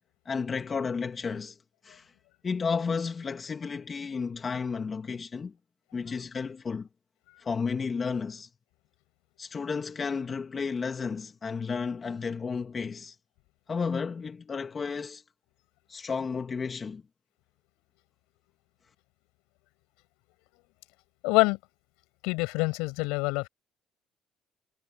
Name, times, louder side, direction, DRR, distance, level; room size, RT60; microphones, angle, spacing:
voice 1, 0.3-1.6 1.8-2.0 2.4-5.5 5.9-6.9 7.4-8.5 9.4-13.1 13.7-15.2 15.9-17.0, left 5 dB, 40° left, 2.5 m, -32 dB
voice 2, 21.2-21.6 22.2-23.5, left 26 dB, 90° left, 6.7 m, -25 dB
supercardioid pair, 75°, 0 cm